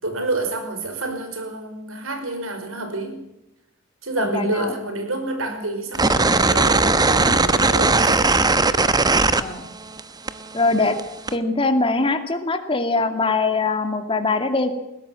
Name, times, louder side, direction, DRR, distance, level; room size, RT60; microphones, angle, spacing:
voice 1, 0.0-3.2 4.0-8.4, right 2 dB, 80° right, 7 dB, 5.4 m, -28 dB
voice 2, 4.2-4.7 6.4-6.5 9.4-9.6 10.5-11.0 11.3-14.7, left 3 dB, 25° left, 6 dB, 2.4 m, -22 dB
sound 1, 5.9-10.0 10.3-11.3, right 3 dB, 20° right, 1.0 m, -18 dB
21.5 x 17.0 x 7.5 m, 0.92 s
head